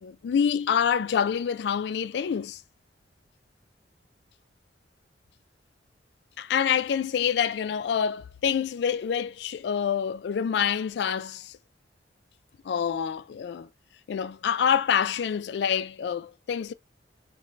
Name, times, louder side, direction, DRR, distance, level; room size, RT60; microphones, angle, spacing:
voice 1, 0.0-2.6 6.4-11.6 12.6-13.7 14.1-16.7, left 7 dB, 65° left, 0.3 m, -26 dB
3.9 x 3.1 x 3.2 m
head